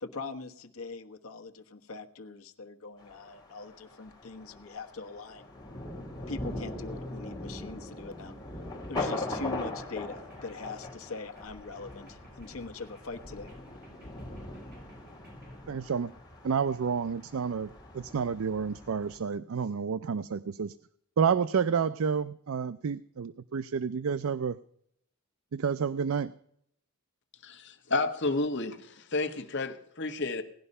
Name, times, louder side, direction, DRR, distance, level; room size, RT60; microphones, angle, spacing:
voice 1, 0.0-5.5 6.3-8.3 8.9-13.5, left 3 dB, 75° left, 5 dB, 1.3 m, -42 dB
Thunder, 3.0-19.2, left 2 dB, 20° left, 3.4 m, -41 dB
sound 1, 9.9-15.6, right 2 dB, 45° right, 7.3 m, -58 dB
voice 2, 15.7-16.1 16.4-20.8 21.2-24.6 25.5-26.3, right 6 dB, 70° right, 14 dB, 0.4 m, -30 dB
voice 3, 27.4-28.8 29.1-30.4, left 3 dB, 55° left, 8 dB, 1.4 m, -30 dB
18.0 x 11.0 x 5.4 m, 0.70 s
head